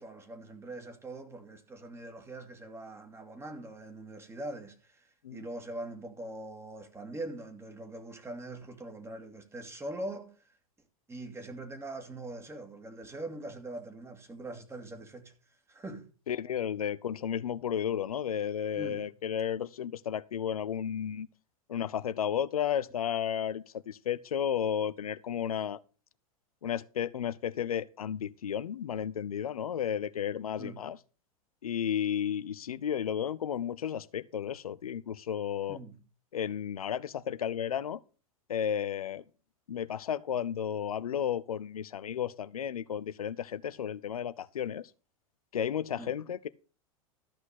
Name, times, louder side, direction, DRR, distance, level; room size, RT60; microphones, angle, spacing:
voice 1, 0.0-10.6 11.1-15.3 15.7-16.1 18.8-19.1 30.6-30.9 35.7-36.0 46.0-46.1, right 2 dB, 15° right, 2.3 m, -42 dB
voice 2, 16.3-21.3 21.7-25.8 26.6-31.0 31.6-35.8 36.3-38.0 38.5-39.2 39.7-44.9 45.5-46.5, left 9 dB, 80° left, 0.6 m, -33 dB
13.5 x 5.9 x 5.9 m
hypercardioid pair, 95°, 19 cm